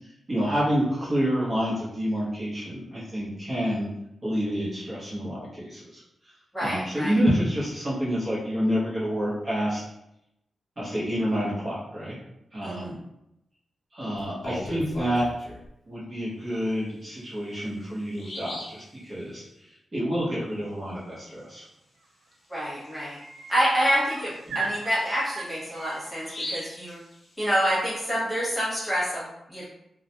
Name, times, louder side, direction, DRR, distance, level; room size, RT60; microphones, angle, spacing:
voice 1, 0.3-3.9 4.2-6.0 6.6-9.8 10.8-12.1 12.5-13.0 13.9-15.2 15.9-19.4 19.9-21.6 24.5-24.6, equal, 35° right, -8 dB, 0.8 m, -28 dB
voice 2, 6.5-7.1 12.6-12.9 22.5-23.2 23.5-27.0 27.4-29.6, equal, 5° left, -8 dB, 1.2 m, -27 dB
Bird vocalization bird call bird song, 14.2-15.7 17.1-17.2 17.7-17.8 18.1-18.8 22.3-22.5 22.8-22.9 23.5-27.7, left 1 dB, 55° left, 0.6 m, -40 dB
sound 1, 22.0-22.3 22.6-26.7 28.4-28.5, right 5 dB, 90° right, 0.3 m, -38 dB
2.3 x 2.1 x 2.8 m, 0.83 s
cardioid pair, 95°, 0 cm